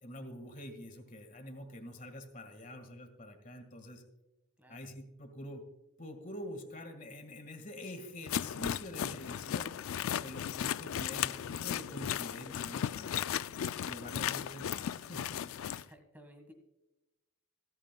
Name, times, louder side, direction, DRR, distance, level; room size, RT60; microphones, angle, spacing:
voice 1, 0.0-4.0 4.7-5.6 6.0-9.9 10.2-13.2 13.8-15.5, left 1 dB, 35° left, 6 dB, 1.7 m, -46 dB
sound 1, 8.3-15.8, left 9 dB, 70° left, 0.3 m, -36 dB
voice 2, 15.6-16.5, equal, 10° right, 5 dB, 1.5 m, -57 dB
26.5 x 8.9 x 2.3 m, 0.98 s
head